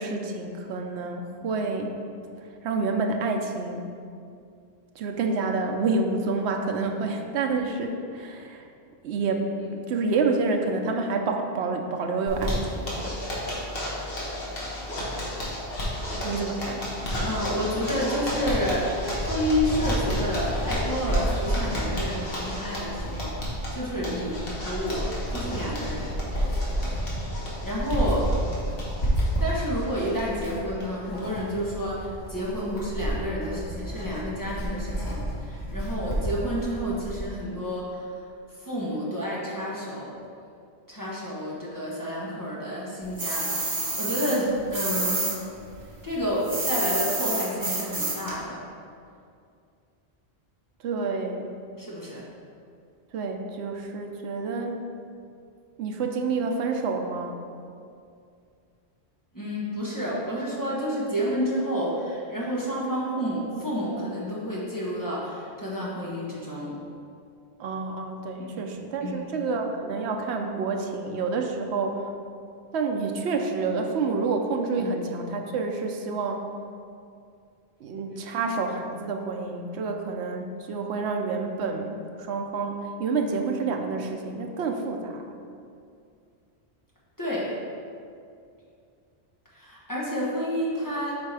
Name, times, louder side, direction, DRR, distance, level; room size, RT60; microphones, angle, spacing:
voice 1, 0.0-2.0 2.6-3.8 5.0-8.6 9.0-9.5 9.7-13.1 16.2-16.9 50.8-51.5 53.1-54.8 55.8-57.3 67.6-72.1 72.7-76.4 77.8-85.4, right 4 dB, 85° right, 3 dB, 0.9 m, -28 dB
Zipper (clothing), 12.3-30.5 30.8-30.9 31.2-31.3 31.6-32.0, left 1 dB, 60° left, 1.6 m, -33 dB
voice 2, 17.2-23.5 23.7-26.1 27.6-28.3 29.4-38.0 38.6-40.1 40.9-45.3 46.0-48.6 51.8-52.2 59.3-66.8 68.4-68.7 69.0-69.3 74.8-74.9 87.2-87.5 89.5-91.2, equal, 20° left, -7 dB, 1.2 m, -30 dB
Writing, 19.0-37.3, right 1 dB, 80° left, 1.8 m, -31 dB
sound 1, 43.2-45.3 45.6-48.3, right 2 dB, 60° right, 1.4 m, -28 dB
8.3 x 4.5 x 3.3 m, 2.4 s
omnidirectional pair, 1.1 m